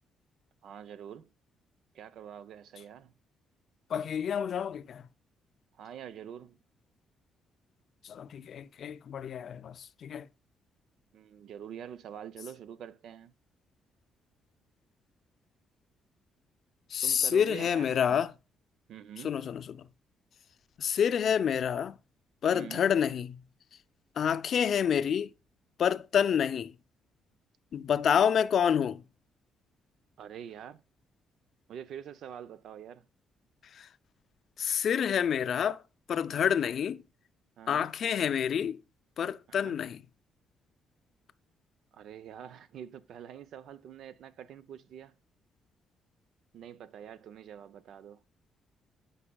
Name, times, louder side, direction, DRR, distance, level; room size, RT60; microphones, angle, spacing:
voice 1, 0.6-1.3 1.9-3.1 5.8-6.6 11.1-13.3 17.0-18.2 18.9-19.3 22.5-22.9 30.2-30.8 31.7-33.1 37.6-37.9 39.5-39.8 41.9-45.1 46.5-48.2, right 9 dB, 70° right, 0.5 m, -45 dB
voice 2, 3.9-5.0 8.0-10.3 16.9-18.3 19.2-19.8 20.8-22.0 22.4-23.4 24.2-25.3 25.8-26.7 27.7-29.0 33.8-33.9 34.6-35.8 36.1-37.0 37.7-38.8 39.2-40.0, left 8 dB, 60° left, 0.4 m, -28 dB
12.5 x 5.4 x 2.2 m
cardioid pair, 90°, 0 cm